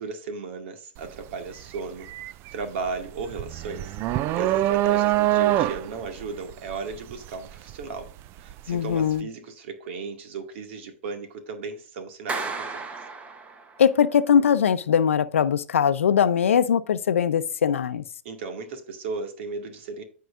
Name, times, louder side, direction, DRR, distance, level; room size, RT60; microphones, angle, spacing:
voice 1, 0.0-8.1 8.4-12.9 18.2-20.0, right 4 dB, 65° right, 2.1 m, -35 dB
sound 1, 1.0-1.2 1.6-8.6, right 14 dB, 35° right, 0.4 m, -25 dB
voice 2, 8.7-9.3 13.8-18.0, left 8 dB, 85° left, 0.6 m, -21 dB
Clapping, 12.3-13.9, right 4 dB, 20° right, 1.1 m, -34 dB
14.0 x 4.7 x 2.5 m
hypercardioid pair, 120°, 7 cm